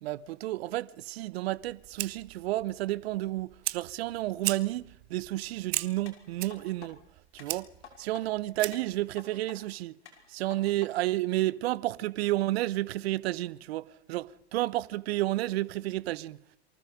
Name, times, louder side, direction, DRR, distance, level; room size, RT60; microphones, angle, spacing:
voice 1, 0.0-7.0 7.3-7.7 8.0-9.9 10.3-16.4, right 16 dB, 60° right, 1.0 m, -31 dB
Fire, 1.5-9.0, right 20 dB, 40° right, 1.1 m, -39 dB
sound 1, 6.1-6.9 7.4-8.2 8.7-9.6 10.1-10.9 11.4-11.5, left 7 dB, 75° left, 6.2 m, -51 dB
28.0 x 24.0 x 5.0 m
hypercardioid pair, 100°, 34 cm